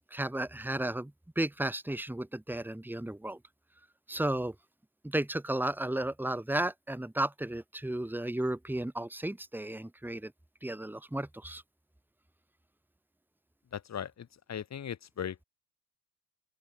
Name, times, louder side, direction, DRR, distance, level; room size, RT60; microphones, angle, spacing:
voice 1, 0.1-3.4 4.1-4.6 5.0-10.3 10.6-11.6, right 1 dB, 5° right, 3.6 m, -33 dB
voice 2, 13.7-15.4, left 8 dB, 35° left, 3.0 m, -38 dB
open air
supercardioid pair, 95°, 45 cm